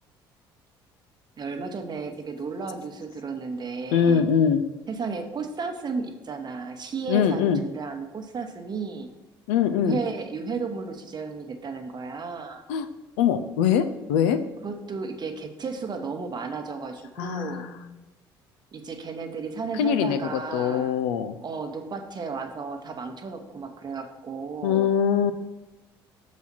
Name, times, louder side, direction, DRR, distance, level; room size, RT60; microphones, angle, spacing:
voice 1, 1.4-4.3 4.9-9.1 9.7-12.6 14.6-17.7 18.7-21.0 21.4-24.9, right 4 dB, 35° right, 5 dB, 1.1 m, -33 dB
voice 2, 3.9-4.6 7.1-7.6 9.5-10.0 12.7-12.9 13.2-14.4 17.2-17.8 19.8-21.3 24.6-25.3, left 8 dB, 65° left, 9 dB, 0.5 m, -23 dB
6.9 x 4.2 x 5.9 m, 1.1 s
figure-of-eight pair, 55°, 13 cm